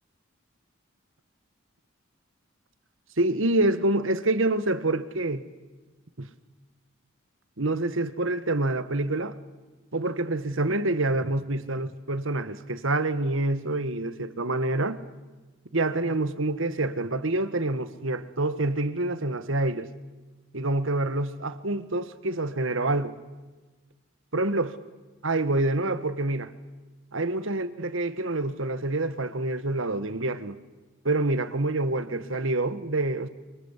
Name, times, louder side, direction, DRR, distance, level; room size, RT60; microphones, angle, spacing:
voice 1, 3.2-5.4 6.2-6.3 7.6-9.3 9.9-15.0 15.7-19.9 20.5-23.2 24.3-24.7 25.2-26.5 27.1-30.6 31.0-33.3, right 2 dB, 70° right, 1.6 m, -27 dB
29.5 x 24.0 x 8.3 m
head